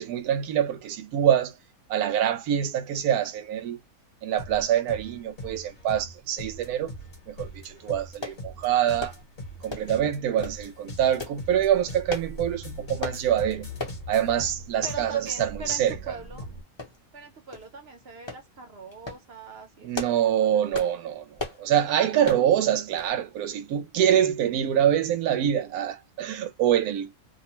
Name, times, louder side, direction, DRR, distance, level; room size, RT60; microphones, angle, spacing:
voice 1, 0.0-1.6 1.9-3.8 4.2-6.9 7.3-9.1 9.6-13.7 14.1-16.1 19.8-27.1, right 10 dB, 80° right, 1.0 m, -25 dB
sound 1, 4.4-16.6, left 1 dB, 45° left, 1.1 m, -41 dB
sound 2, 8.2-8.4 9.0-9.2 9.7-10.0 10.4-10.6 11.2-11.4 12.1-12.3 13.0-13.2 13.8-14.0 14.4-14.5 14.8-15.0 15.7-15.8 16.8-17.2 17.5-17.7 18.3-18.4 18.9-19.2 19.7-20.3 20.7-21.0 21.4-21.6 22.2-22.5 23.0-23.2 23.4-23.5, left 3 dB, 25° left, 0.8 m, -35 dB
voice 2, 14.8-16.5 17.1-20.6, right 3 dB, 50° right, 0.9 m, -42 dB
2.7 x 2.1 x 2.9 m
omnidirectional pair, 1.6 m